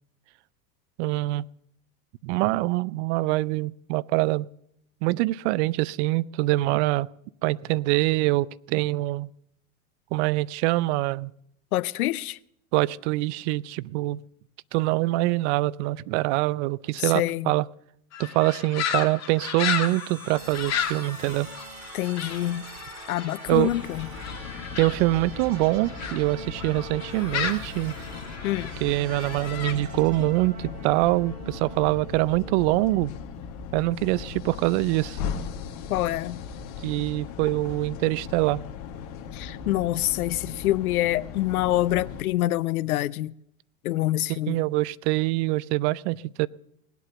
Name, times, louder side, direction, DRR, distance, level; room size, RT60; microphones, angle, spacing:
voice 1, 1.0-1.4 2.2-4.5 5.0-7.1 7.4-9.3 10.1-11.3 12.7-14.2 14.7-17.7 18.2-21.5 23.5-23.7 24.8-27.9 28.8-33.1 33.7-35.2 36.8-38.6 44.3-46.5, right 19 dB, 50° right, 0.5 m, -24 dB
voice 2, 11.7-12.4 17.0-17.5 21.9-22.7 23.1-24.1 28.4-28.7 35.9-36.4 39.3-43.3 43.8-44.6, left 15 dB, 80° left, 0.6 m, -26 dB
sound 1, 18.1-26.2 26.6-29.7, left 8 dB, 35° left, 2.0 m, -34 dB
sound 2, 19.6-33.5, right 4 dB, 70° right, 3.5 m, -44 dB
sound 3, 23.5-42.2, left 6 dB, 55° left, 1.7 m, -38 dB
19.5 x 8.3 x 6.9 m
hypercardioid pair, 95°, 44 cm